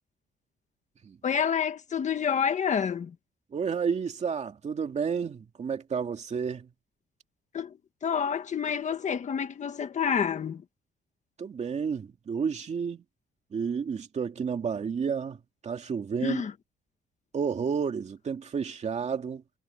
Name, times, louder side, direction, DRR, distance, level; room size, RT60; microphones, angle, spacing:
voice 1, 1.2-3.1 7.5-7.7 8.0-10.6 16.2-16.5, left 7 dB, 35° left, 1.6 m, -28 dB
voice 2, 3.5-6.7 11.4-13.0 13.5-15.4 15.6-16.5 17.3-19.4, right 6 dB, 35° right, 2.5 m, -31 dB
cardioid pair, 160°, 20 cm